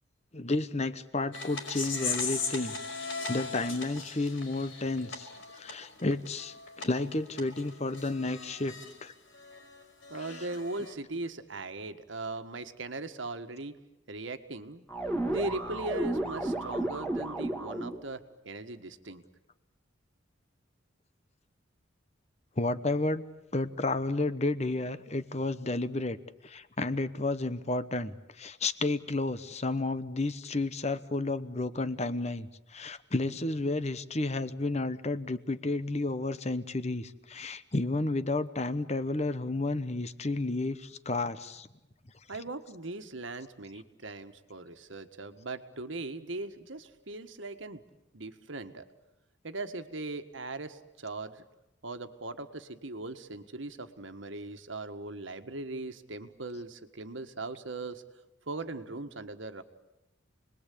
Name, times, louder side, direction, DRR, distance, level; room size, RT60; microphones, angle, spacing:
voice 1, 0.3-2.8 3.3-9.1 10.1-10.4 22.6-23.2 23.5-26.2 26.4-41.7, left 2 dB, 35° left, 13 dB, 1.0 m, -31 dB
sound 1, 1.3-8.9 9.3-10.9, left 4 dB, 75° left, 5.2 m, -38 dB
voice 2, 10.1-13.8 14.1-14.9 15.3-19.2 42.3-47.8 48.1-48.9 49.4-51.4 51.8-58.0 58.5-59.6, right 2 dB, 70° right, 8 dB, 1.6 m, -39 dB
sound 2, 14.9-18.0, right 1 dB, 5° left, 2.3 m, -32 dB
29.0 x 21.0 x 8.5 m, 0.94 s
head